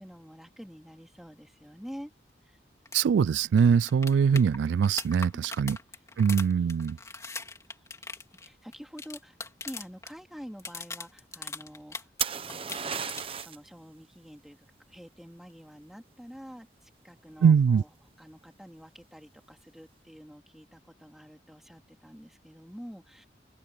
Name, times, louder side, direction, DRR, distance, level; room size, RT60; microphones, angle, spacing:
voice 1, 0.0-2.1 2.4-2.6 5.3-5.6 5.9-6.0 7.0-7.4 7.7-9.4 9.6-12.1 12.8-13.0 13.3-23.3, equal, ahead, 3.4 m, -47 dB
sound 1, 2.8-3.0 3.3-3.4 3.6-10.1 10.4-12.2 12.5-13.4 15.5-15.6, left 4 dB, 15° left, 3.0 m, -40 dB
voice 2, 2.9-5.8 6.2-7.0 17.4-17.8, right 6 dB, 90° right, 0.3 m, -22 dB
sound 2, 12.2-13.7 17.3-17.8, right 7 dB, 30° right, 0.9 m, -33 dB
open air
head